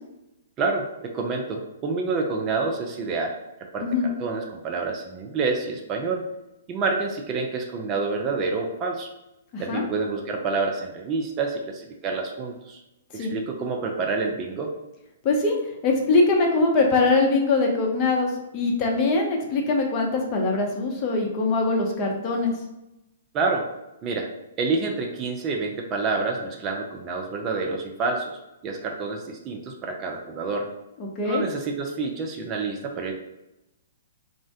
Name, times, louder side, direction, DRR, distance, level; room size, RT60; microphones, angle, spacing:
voice 1, 0.6-3.3 3.7-6.2 6.7-9.1 9.6-12.8 13.1-14.7 23.3-23.7 24.0-24.3 24.6-28.4 28.6-30.7 31.2-33.1, right 4 dB, 30° right, 1 dB, 0.4 m, -28 dB
voice 2, 9.5-9.8 13.1-13.3 15.2-15.6 15.8-22.5 31.0-31.4, left 3 dB, 30° left, 0 dB, 0.7 m, -22 dB
2.5 x 2.1 x 3.5 m, 0.92 s
figure-of-eight pair, 120°, 0 cm